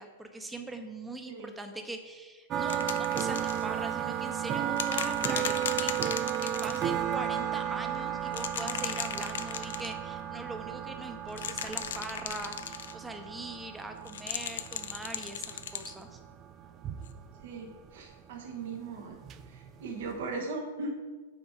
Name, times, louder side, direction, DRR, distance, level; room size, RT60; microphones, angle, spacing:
voice 1, 0.0-16.2, right 2 dB, 10° right, 5 dB, 0.8 m, -42 dB
sound 1, 2.5-20.3, right 10 dB, 30° right, 0.4 m, -34 dB
sound 2, 2.7-3.6 4.8-6.9 8.3-9.9 11.3-12.9 14.1-15.9 17.1-17.2, left 8 dB, 65° left, 0.5 m, -36 dB
voice 2, 17.4-19.1 19.5-20.9, right 3 dB, 60° right, 1 dB, 1.0 m, -38 dB
5.8 x 4.5 x 5.8 m, 1.4 s
figure-of-eight pair, 100°, 0 cm